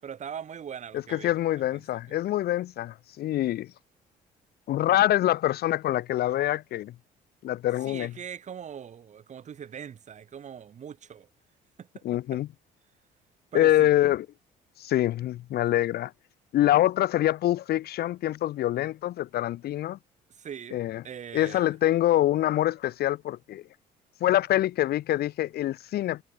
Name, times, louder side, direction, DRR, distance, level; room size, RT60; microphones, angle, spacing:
voice 1, 0.0-2.2 7.8-11.3 11.8-12.0 12.3-12.4 13.5-13.9 20.3-21.8, right 8 dB, 45° right, 5.3 m, -41 dB
voice 2, 1.1-3.7 4.7-6.9 7.4-8.1 12.0-12.5 13.5-14.3 14.8-16.1 16.5-20.0 20.7-21.0 21.3-23.6 24.2-26.2, left 13 dB, 70° left, 2.7 m, -25 dB
cardioid pair, 110°, 17 cm